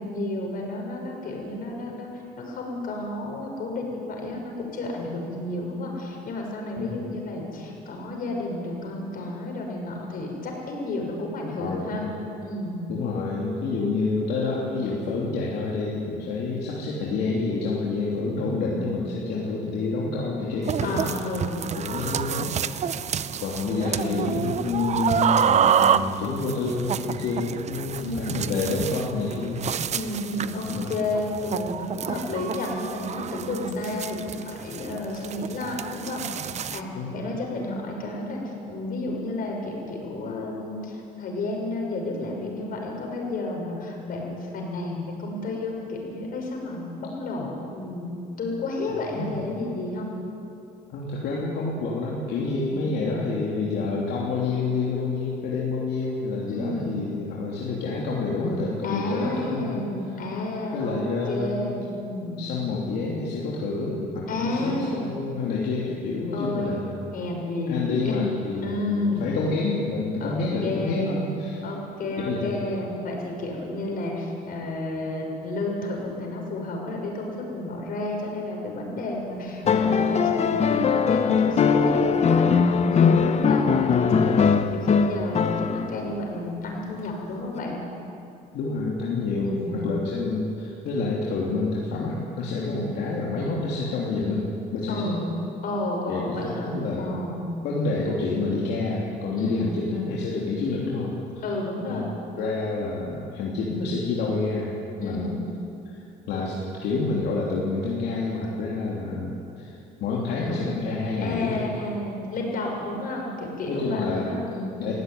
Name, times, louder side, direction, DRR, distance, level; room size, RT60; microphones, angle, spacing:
voice 1, 0.0-2.1 2.4-12.1 12.4-12.8 20.8-21.6 23.9-24.3 28.0-28.5 29.9-50.1 52.5-52.8 56.5-57.1 58.8-61.0 61.3-62.5 64.3-65.1 66.3-66.8 67.1-68.2 68.6-69.3 70.2-70.4 70.6-71.2 71.6-87.8 89.4-89.9 92.6-92.9 94.9-95.2 95.6-96.7 97.0-97.5 99.4-99.8 101.4-102.1 105.0-105.3 111.2-114.8, left 2 dB, 55° left, 0 dB, 6.3 m, -31 dB
voice 2, 11.6-12.1 12.9-21.2 21.7-22.8 23.4-29.7 30.6-30.9 35.5-35.6 36.9-37.2 49.1-49.4 50.9-59.8 60.7-61.8 62.4-67.0 67.7-71.6 72.2-72.5 88.5-89.6 89.8-94.5 94.7-95.2 96.1-97.2 97.6-101.4 101.9-102.0 102.4-104.7 105.0-105.4 105.8-106.0 106.3-111.6 113.6-114.3 114.8-114.9, left 3 dB, 75° left, -4 dB, 3.1 m, -28 dB
sound 1, 20.6-36.8, right 8 dB, 40° right, 0.7 m, -28 dB
sound 2, 79.6-86.1 87.6-87.7, left 6 dB, 40° left, 1.0 m, -21 dB
19.0 x 16.0 x 9.5 m, 2.7 s
cardioid pair, 110°, 17 cm